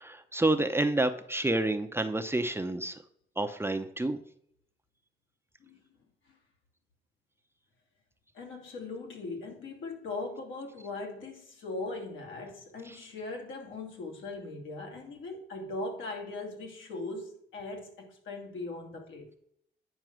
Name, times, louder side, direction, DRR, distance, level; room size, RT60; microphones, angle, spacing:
voice 1, 0.0-2.9 3.4-4.2 12.9-13.0, right 2 dB, 10° right, 6 dB, 0.7 m, -29 dB
voice 2, 8.3-19.4, left 2 dB, 75° left, 1 dB, 2.6 m, -39 dB
9.2 x 4.7 x 6.1 m, 0.69 s
cardioid pair, 90°, 20 cm